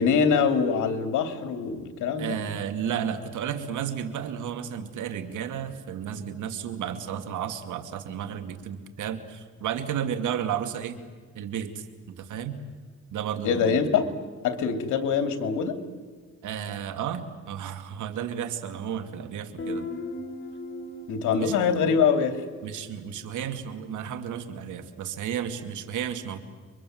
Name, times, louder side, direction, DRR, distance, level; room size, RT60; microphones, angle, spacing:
voice 1, 0.0-2.4 13.4-14.1 14.4-15.8 21.1-22.4, left 6 dB, 80° left, 7 dB, 2.9 m, -24 dB
voice 2, 2.2-11.0 11.3-12.6 13.1-13.8 16.4-19.9 21.3-21.5 22.6-26.4, right 8 dB, 80° right, 8 dB, 2.6 m, -33 dB
Guitar, 19.6-23.2, left 2 dB, 40° left, 4.5 m, -38 dB
30.0 x 23.5 x 7.9 m, 1.5 s
cardioid pair, 90°, 30 cm